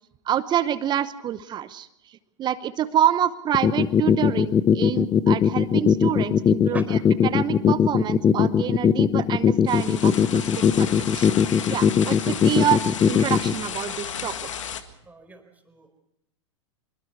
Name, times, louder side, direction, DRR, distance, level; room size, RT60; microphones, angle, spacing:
voice 1, 0.3-1.9 2.4-6.8 7.2-10.4 10.8-11.3 11.7-14.3, right 10 dB, 30° right, 14 dB, 0.9 m, -27 dB
sound 1, 3.5-13.5, left 7 dB, 25° left, 1.0 m, -18 dB
sound 2, 9.7-14.8, left 8 dB, 80° left, 1.8 m, -33 dB
voice 2, 15.0-16.0, right 3 dB, 10° right, 5 dB, 4.4 m, -41 dB
24.5 x 22.5 x 4.7 m, 0.80 s
hypercardioid pair, 105°, 16 cm